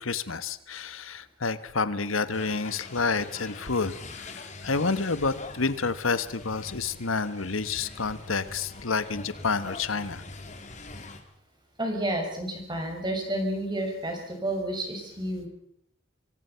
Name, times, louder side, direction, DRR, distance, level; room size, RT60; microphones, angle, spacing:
voice 1, 0.0-10.2, left 4 dB, 80° left, 13 dB, 1.3 m, -29 dB
sound 1, 2.3-11.2, left 2 dB, 35° left, 3.1 m, -43 dB
voice 2, 11.8-15.5, right 1 dB, 20° right, 3 dB, 6.6 m, -30 dB
26.0 x 24.0 x 5.8 m, 0.72 s
head